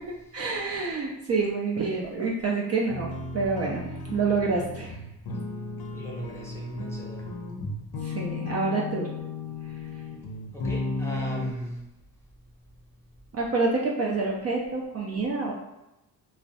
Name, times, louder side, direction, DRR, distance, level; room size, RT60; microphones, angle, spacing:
voice 1, 0.3-5.0 8.0-9.1 13.3-15.5, right 4 dB, 40° right, -3 dB, 0.4 m, -27 dB
sound 1, 2.9-11.5, left 3 dB, 70° left, 0.5 m, -34 dB
voice 2, 5.9-7.3 10.5-11.8, equal, 5° left, -5 dB, 0.6 m, -37 dB
2.5 x 2.0 x 2.5 m, 0.93 s
cardioid pair, 85°, 39 cm